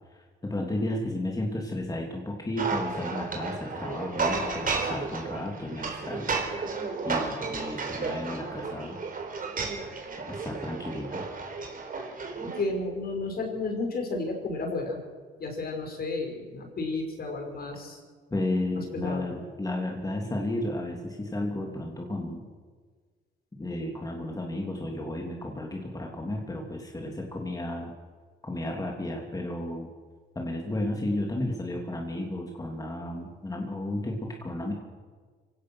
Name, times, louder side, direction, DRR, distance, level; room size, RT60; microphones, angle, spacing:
voice 1, 0.1-6.4 7.0-9.0 10.3-11.2 18.3-22.4 23.6-27.9 28.4-29.9 30.3-34.7, left 1 dB, 20° left, 0 dB, 3.1 m, -33 dB
sound 1, 2.6-12.6, right 4 dB, 45° right, 4.3 m, -33 dB
voice 2, 12.4-15.0 15.4-18.0 18.8-19.3, left 3 dB, 50° left, 3 dB, 5.8 m, -32 dB
25.0 x 17.0 x 6.4 m, 1.5 s
cardioid pair, 90°, 20 cm